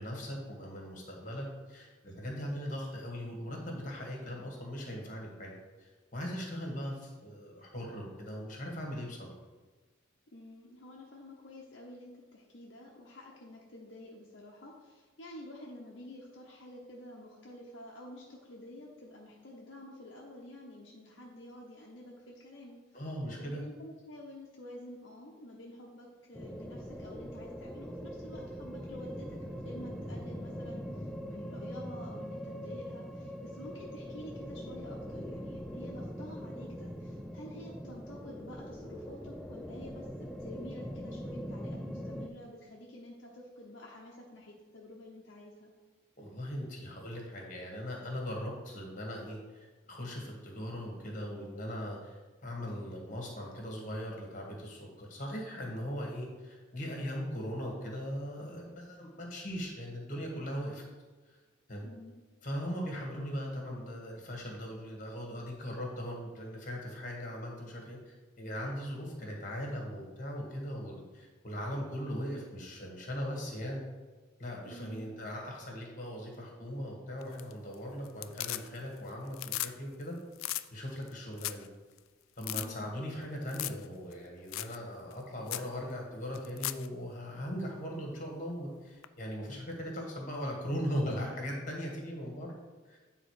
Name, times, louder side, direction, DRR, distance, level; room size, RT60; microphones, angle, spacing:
voice 1, 0.0-5.5 5.8-9.3 22.9-23.6 46.2-60.8 61.7-61.9 62.4-73.8 74.4-80.2 80.7-81.7 82.4-92.5 92.9-93.0, equal, 40° left, 0 dB, 1.6 m, -39 dB
voice 2, 10.3-22.8 23.4-45.7 61.8-62.1 74.7-75.1 82.5-82.9, left 1 dB, 65° left, -3 dB, 0.9 m, -49 dB
sound 1, 26.3-42.3, equal, ahead, 0.4 m, -42 dB
sound 2, 77.2-77.7 78.0-79.0 79.3-79.7 80.0-80.1 80.4-80.6 81.1-81.2 81.4-81.7 82.0-82.1 82.4-82.7 83.5-83.8 84.1-84.2 84.5-84.8 85.1-85.2 85.5-85.7 86.3-86.9 89.0-89.1, left 16 dB, 85° left, 0.3 m, -37 dB
9.1 x 3.8 x 4.8 m, 1.3 s
head